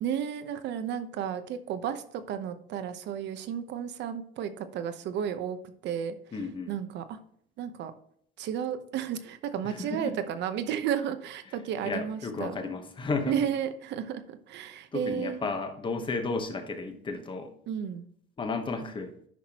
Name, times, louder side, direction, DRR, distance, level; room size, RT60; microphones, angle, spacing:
voice 1, 0.0-5.6 5.8-6.1 6.7-7.2 7.6-7.9 8.4-12.6 13.3-15.5 17.7-18.0, right 9 dB, 60° right, 10 dB, 0.9 m, -33 dB
voice 2, 6.3-6.7 9.6-10.2 11.8-13.4 14.9-17.5 18.4-19.1, left 3 dB, 25° left, 6 dB, 1.1 m, -33 dB
10.5 x 5.8 x 2.9 m, 0.65 s
cardioid pair, 150°, 21 cm